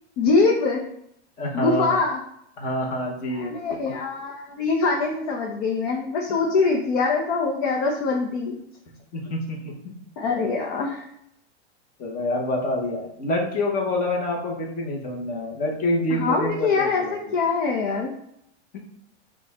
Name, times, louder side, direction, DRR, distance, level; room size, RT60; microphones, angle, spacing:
voice 1, 0.2-0.8 1.5-2.2 3.3-8.6 10.2-11.0 16.1-18.1, left 4 dB, 50° left, 0 dB, 0.8 m, -23 dB
voice 2, 1.4-2.0 2.6-3.5 9.1-10.0 12.0-17.1 18.7-18.8, left 1 dB, 25° left, -1 dB, 1.0 m, -27 dB
5.2 x 2.4 x 4.2 m, 0.75 s
supercardioid pair, 145°, 34 cm